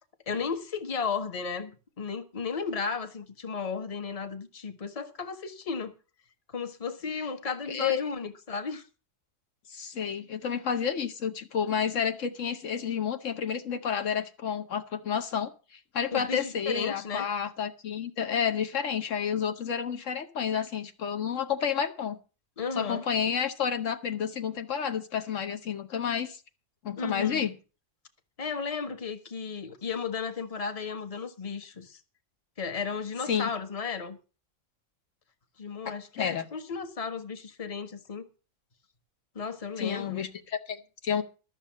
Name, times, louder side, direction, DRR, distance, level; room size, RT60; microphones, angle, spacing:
voice 1, 0.3-5.9 6.5-8.8 16.1-17.3 22.6-23.0 27.0-27.4 28.4-32.0 32.6-34.2 35.6-38.3 39.3-40.3, left 5 dB, 30° left, 1.2 m, -34 dB
voice 2, 7.7-8.0 9.7-22.2 22.8-26.4 26.8-27.6 33.3-33.5 35.8-36.5 39.8-41.2, left 7 dB, 70° left, 1.2 m, -30 dB
13.0 x 6.7 x 7.3 m
omnidirectional pair, 1.4 m